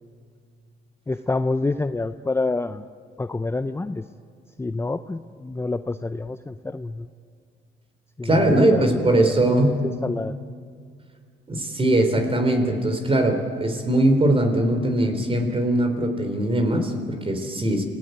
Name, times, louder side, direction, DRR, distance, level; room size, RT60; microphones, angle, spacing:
voice 1, 1.1-2.8 3.2-4.0 4.6-7.1 8.2-10.4, left 3 dB, 10° left, 10 dB, 0.6 m, -27 dB
voice 2, 8.2-9.7 11.5-17.9, right 1 dB, 30° right, 6 dB, 3.8 m, -21 dB
26.5 x 17.5 x 9.3 m, 2.1 s
cardioid pair, 90°, 20 cm